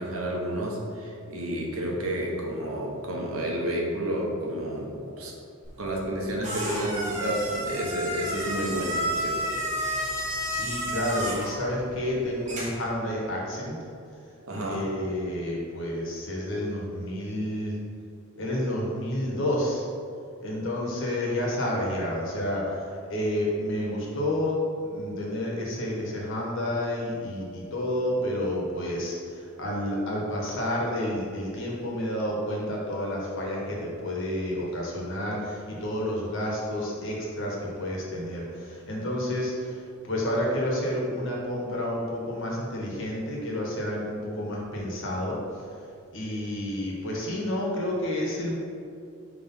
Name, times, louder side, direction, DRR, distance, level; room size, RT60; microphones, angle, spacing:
voice 1, 0.0-5.3 5.8-9.4 14.4-14.9, right 1 dB, 70° right, -2 dB, 1.1 m, -30 dB
sound 1, 5.6-12.9, equal, 35° right, 1.3 m, -32 dB
voice 2, 10.1-13.8 14.5-17.8 18.4-19.9 20.4-45.4 46.1-48.5, left 1 dB, 60° left, -3 dB, 1.5 m, -30 dB
5.5 x 3.4 x 5.5 m, 2.5 s
head